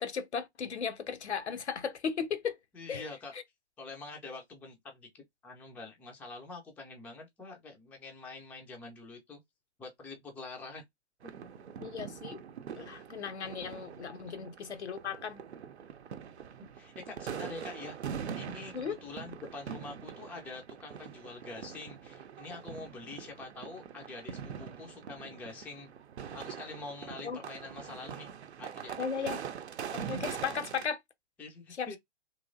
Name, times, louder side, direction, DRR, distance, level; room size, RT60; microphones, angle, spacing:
voice 1, 0.0-2.6 2.9-3.1 3.3-3.4 11.8-12.4 12.8-15.4 18.7-19.0 27.2-27.4 29.0-29.4 29.9-31.0 31.8-32.0, left 6 dB, 75° left, 0.8 m, -36 dB
voice 2, 2.7-3.3 3.8-9.4 9.8-10.8 14.3-14.5 16.8-18.0 18.3-25.9 26.3-28.3 28.6-29.3 31.4-32.0, left 3 dB, 5° left, 0.5 m, -46 dB
sound 1, 11.2-30.9, right 7 dB, 70° right, 0.7 m, -43 dB
3.1 x 2.9 x 2.5 m
figure-of-eight pair, 120°, 34 cm